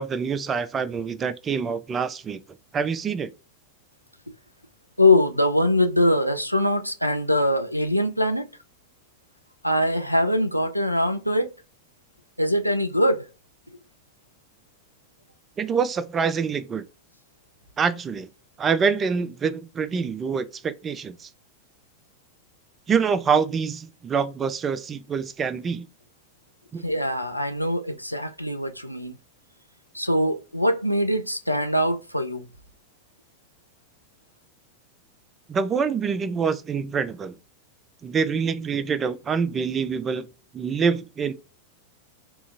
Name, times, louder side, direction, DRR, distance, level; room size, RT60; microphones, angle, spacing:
voice 1, 0.0-2.4 2.7-3.3 15.6-16.8 17.8-18.3 18.6-21.3 22.9-25.9 26.7-26.8 35.5-37.3 38.0-40.3 40.5-41.3, right 6 dB, 20° right, 0.3 m, -25 dB
voice 2, 5.0-8.5 9.6-11.5 12.4-13.2 26.8-29.2 29.9-32.4, left 1 dB, 90° left, 0.3 m, -22 dB
2.7 x 2.4 x 2.4 m
figure-of-eight pair, 90°, 0 cm